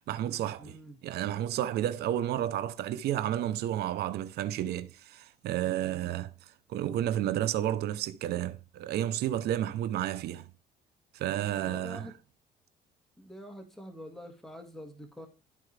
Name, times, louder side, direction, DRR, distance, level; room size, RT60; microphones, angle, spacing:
voice 1, 0.1-6.3 6.7-10.5 11.1-12.1, right 12 dB, 70° right, 0.7 m, -31 dB
voice 2, 0.6-1.0 5.9-6.2 11.6-12.1 13.2-15.3, equal, ahead, 1.8 m, -46 dB
13.0 x 4.6 x 3.3 m
cardioid pair, 110°, 17 cm